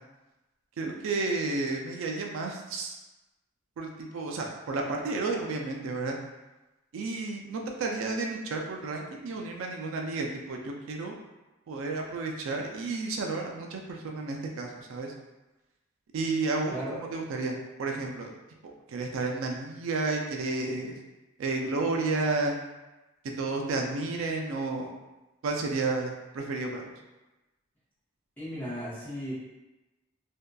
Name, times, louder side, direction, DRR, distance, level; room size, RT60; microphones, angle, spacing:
voice 1, 0.8-3.0 3.8-6.2 6.9-11.1 11.7-15.1 16.1-18.3 18.9-21.0 21.4-22.6 23.4-24.9 25.4-26.9, right 3 dB, 80° right, 1 dB, 0.3 m, -31 dB
voice 2, 28.4-29.3, equal, 10° left, -10 dB, 0.8 m, -35 dB
2.6 x 2.2 x 2.2 m, 1.1 s
head